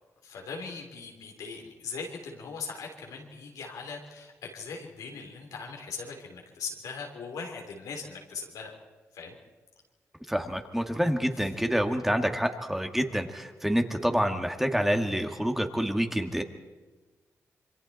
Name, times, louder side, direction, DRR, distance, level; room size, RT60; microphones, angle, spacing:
voice 1, 0.2-8.7 9.1-9.4, left 5 dB, 85° left, 1 dB, 3.7 m, -40 dB
voice 2, 10.3-16.4, equal, 5° right, 5 dB, 2.2 m, -27 dB
27.0 x 23.5 x 4.4 m, 1.2 s
supercardioid pair, 50°, 6 cm